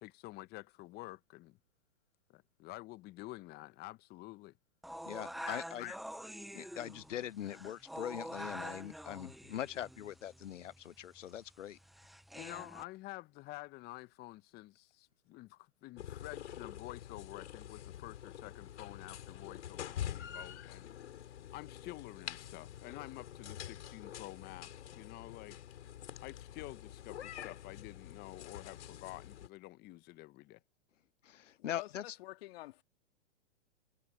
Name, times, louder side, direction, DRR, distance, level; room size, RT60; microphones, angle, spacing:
voice 1, 0.0-1.6 2.3-4.5 5.4-6.0 12.3-20.9 21.5-25.6 26.2-30.6, left 19 dB, 25° left, 0.9 m, -49 dB
sound 1, 4.8-12.8, equal, ahead, 0.4 m, -47 dB
voice 2, 5.0-5.8 6.5-11.8 31.2-32.0, left 11 dB, 85° left, 0.7 m, -42 dB
sound 2, 16.0-29.5, left 10 dB, 70° left, 5.3 m, -46 dB
voice 3, 31.6-32.8, left 18 dB, 55° left, 2.2 m, -49 dB
hypercardioid pair, 120°, 36 cm